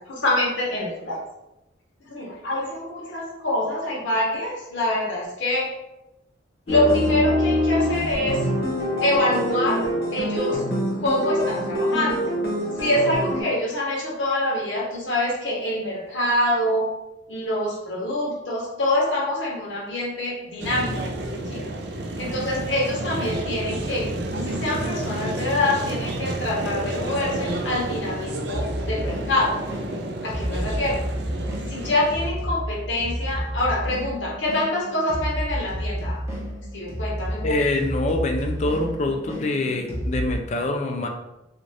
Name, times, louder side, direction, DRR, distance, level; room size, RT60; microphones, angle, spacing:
voice 1, 0.1-1.2 2.0-5.7 6.7-8.4 9.0-9.8 10.1-10.6 11.0-12.2 12.8-16.9 17.3-20.9 21.5-21.7 22.2-29.6 30.2-31.0 31.7-36.2 36.7-37.6, left 1 dB, 85° left, -4 dB, 1.0 m, -25 dB
sound 1, 6.7-13.4, equal, 55° left, 0.9 m, -24 dB
sound 2, 20.6-32.3, right 1 dB, 65° right, 0.4 m, -30 dB
sound 3, 28.5-40.4, equal, 15° right, 0.7 m, -31 dB
voice 2, 37.4-41.1, left 2 dB, 40° left, 4 dB, 0.3 m, -25 dB
2.5 x 2.4 x 3.2 m, 0.93 s
head